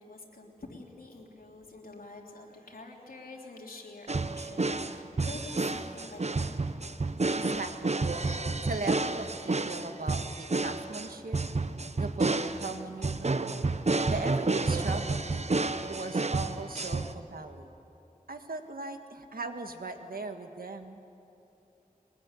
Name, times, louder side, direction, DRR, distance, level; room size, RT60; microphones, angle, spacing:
voice 1, 0.0-7.1, left 2 dB, 85° left, 0 dB, 3.5 m, -47 dB
sound 1, 4.1-17.1, right 3 dB, 50° right, 0.9 m, -30 dB
voice 2, 7.3-8.1 8.6-11.4 11.9-13.6 14.0-15.4 15.8-17.7 18.3-21.0, right 3 dB, 85° right, 6 dB, 1.7 m, -39 dB
22.5 x 21.0 x 9.9 m, 3.0 s
wide cardioid pair, 70°, 15 cm